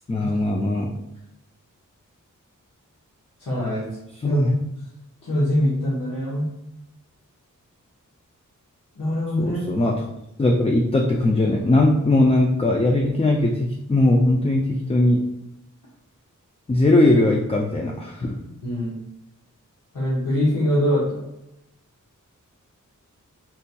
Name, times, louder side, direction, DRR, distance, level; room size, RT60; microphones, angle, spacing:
voice 1, 0.1-0.9 4.2-4.6 9.4-10.0 10.4-15.2 16.7-18.4, left 2 dB, 20° left, 0 dB, 0.3 m, -19 dB
voice 2, 3.4-4.0 4.2-4.4 5.2-6.5 8.9-9.6 18.6-18.9 19.9-21.2, equal, 75° left, -8 dB, 1.1 m, -23 dB
4.4 x 2.7 x 2.2 m, 0.84 s
wide cardioid pair, 85°, 32 cm